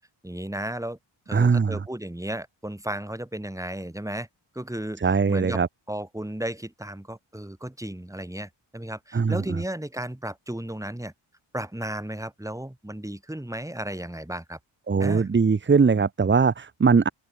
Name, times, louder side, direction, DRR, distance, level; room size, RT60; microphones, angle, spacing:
voice 1, 0.2-1.0 1.3-4.3 4.5-5.6 5.9-11.1 11.5-14.6 15.0-15.3, right 1 dB, 5° right, 7.2 m, -34 dB
voice 2, 1.3-1.8 5.0-5.7 9.1-9.4 14.9-17.1, right 5 dB, 25° right, 0.8 m, -20 dB
open air
wide cardioid pair, 135°, 48 cm